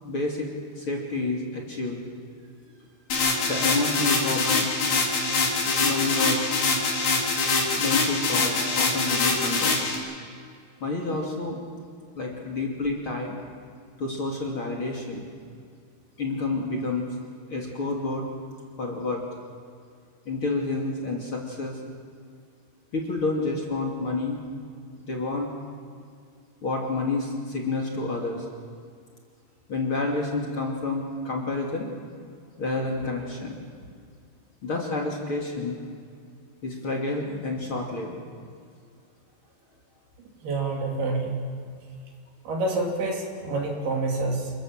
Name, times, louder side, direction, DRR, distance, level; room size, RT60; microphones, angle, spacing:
voice 1, 0.0-0.5 0.8-2.0 3.5-4.7 5.8-6.6 7.8-9.9 10.8-11.6 12.1-13.4 14.0-15.3 16.2-17.0 17.4-18.3 18.8-19.2 20.3-21.8 22.9-24.4 25.0-25.5 26.6-28.4 29.7-31.9 32.6-33.6 34.6-35.8 36.6-38.2, left 3 dB, 35° left, -1 dB, 3.0 m, -29 dB
sound 1, 3.1-10.0, left 3 dB, 70° left, 5.6 m, -24 dB
voice 2, 40.4-41.4 42.5-44.5, right 3 dB, 70° right, -1 dB, 5.5 m, -27 dB
29.0 x 22.5 x 7.5 m, 2.3 s
omnidirectional pair, 4.6 m